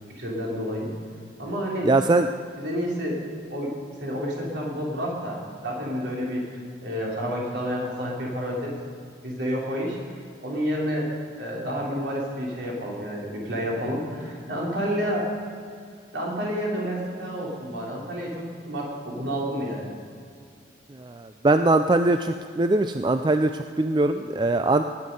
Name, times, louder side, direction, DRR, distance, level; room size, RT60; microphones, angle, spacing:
voice 1, 0.2-0.9 1.4-1.9 2.6-3.2 3.5-3.7 4.0-8.7 9.2-10.0 10.4-11.1 11.4-15.3 16.1-19.9, equal, 65° right, -3 dB, 3.4 m, -29 dB
voice 2, 1.8-2.3 20.9-24.8, right 2 dB, 25° right, 8 dB, 0.3 m, -22 dB
18.5 x 9.6 x 5.4 m, 2.3 s
head